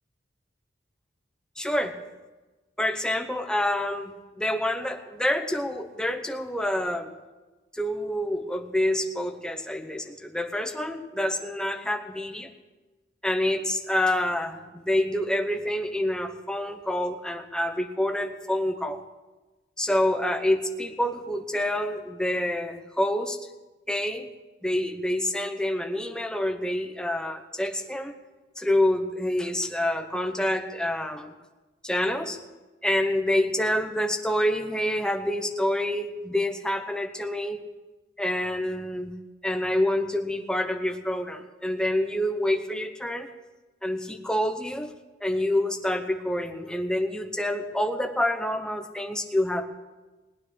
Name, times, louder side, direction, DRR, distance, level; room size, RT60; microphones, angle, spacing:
voice 1, 1.6-1.9 2.8-7.1 7.7-12.5 13.2-19.0 19.8-23.4 23.9-24.3 24.6-28.1 28.6-31.3 31.8-32.4 32.8-37.6 38.2-39.1 39.4-43.3 43.8-44.9 45.2-49.6, left 1 dB, 5° left, 5 dB, 0.9 m, -27 dB
18.5 x 9.5 x 6.5 m, 1.2 s
head